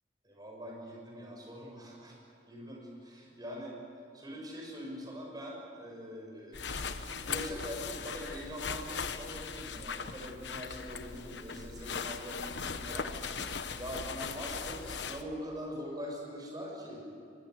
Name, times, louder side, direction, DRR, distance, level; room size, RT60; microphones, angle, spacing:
voice 1, 0.2-2.2 2.5-3.8 4.1-17.1, equal, 20° right, -1 dB, 6.1 m, -43 dB
sound 1, 6.5-15.2, left 5 dB, 80° left, 1.1 m, -39 dB
23.5 x 19.5 x 8.0 m, 2.4 s
head